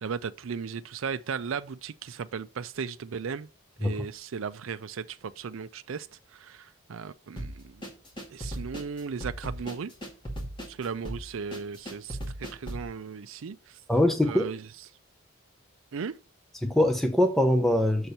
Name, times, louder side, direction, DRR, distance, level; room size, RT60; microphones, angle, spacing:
voice 1, 0.0-3.5 3.8-7.8 8.3-9.9 10.7-13.8 14.2-14.7 15.9-16.2, right 6 dB, 70° right, 0.4 m, -36 dB
sound 1, 7.4-12.9, right 1 dB, 20° left, 2.2 m, -37 dB
voice 2, 13.9-14.5 16.6-18.1, left 1 dB, ahead, 0.8 m, -23 dB
6.5 x 4.4 x 6.6 m
head